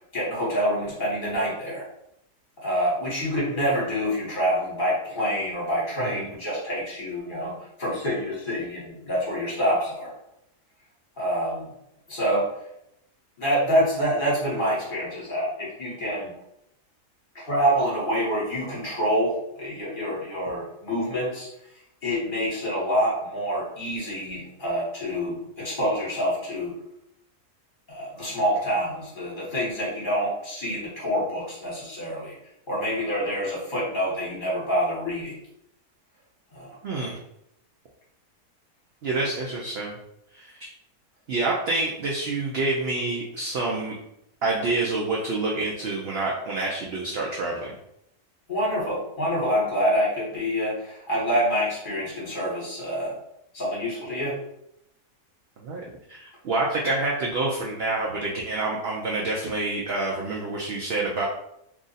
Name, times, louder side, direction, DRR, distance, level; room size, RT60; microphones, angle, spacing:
voice 1, 0.1-1.8 2.6-7.5 7.8-10.1 11.2-11.7 12.1-12.5 13.4-16.3 17.3-21.5 22.0-26.7 27.9-32.3 32.7-35.3 36.5-36.7 48.5-53.1 53.5-54.4, equal, 35° left, -6 dB, 1.3 m, -26 dB
voice 2, 36.8-37.2 39.0-40.0 40.3-40.7 41.3-44.0 44.4-47.7 55.6-55.8 56.1-61.2, right 2 dB, 75° right, -2 dB, 0.5 m, -27 dB
2.9 x 2.5 x 3.9 m, 0.79 s
omnidirectional pair, 1.7 m